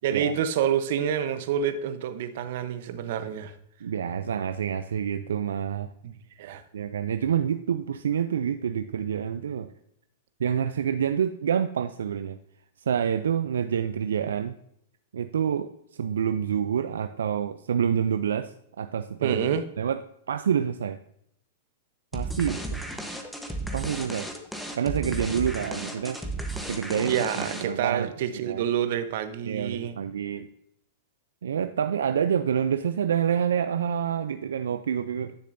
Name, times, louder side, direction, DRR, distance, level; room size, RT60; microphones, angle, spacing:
voice 1, 0.0-3.5 6.0-6.6 19.2-19.6 27.1-30.0, right 9 dB, 60° right, 10 dB, 0.8 m, -28 dB
voice 2, 3.8-5.9 6.7-9.7 10.4-12.4 12.9-14.5 15.1-15.7 16.0-18.5 18.8-20.0 20.3-21.0 22.1-22.8 23.7-24.3 24.8-26.2 26.6-28.1 28.4-28.6 29.5-30.5 31.4-35.4, right 8 dB, 85° right, 9 dB, 0.4 m, -27 dB
sound 1, 22.1-27.9, right 1 dB, ahead, 1.0 m, -34 dB
10.5 x 6.7 x 2.6 m, 0.73 s
hypercardioid pair, 125°, 0 cm